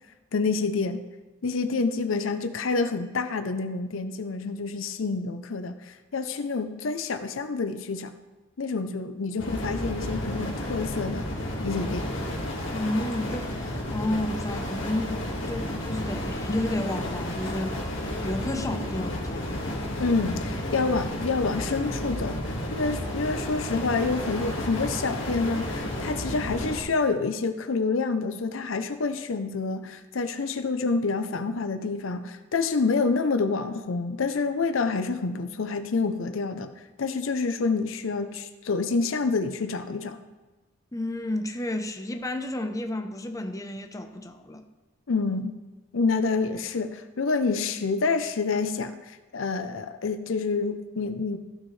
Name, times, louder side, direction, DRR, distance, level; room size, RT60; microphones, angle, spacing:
voice 1, 0.3-1.0 1.4-8.1 8.6-12.1 20.0-36.7 37.0-40.2 45.1-45.5 45.9-51.4, left 4 dB, 90° left, 9 dB, 0.6 m, -28 dB
sound 1, 9.4-26.8, left 1 dB, 75° left, 1.8 m, -32 dB
voice 2, 12.7-19.6 40.9-44.6, left 1 dB, 15° left, 5 dB, 0.7 m, -31 dB
15.0 x 6.2 x 3.2 m, 1.2 s
head